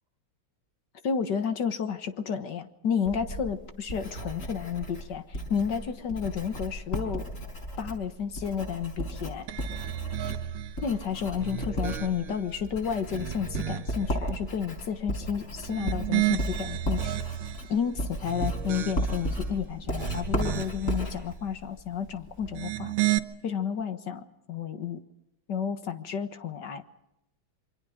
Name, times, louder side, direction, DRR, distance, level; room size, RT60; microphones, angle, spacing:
voice 1, 1.0-7.2 7.8-9.5 10.8-17.1 17.7-22.9 23.4-25.0 25.5-26.8, left 7 dB, 55° left, 9 dB, 1.9 m, -31 dB
Writing, 3.1-22.6, equal, 35° left, 5.9 m, -35 dB
sound 1, 9.5-10.8 11.3-12.5 13.0-14.1 15.6-17.7 18.2-19.3 19.8-20.9 22.4-23.2, right 15 dB, 75° right, 1.9 m, -32 dB
27.5 x 25.0 x 5.1 m, 0.85 s
omnidirectional pair, 2.3 m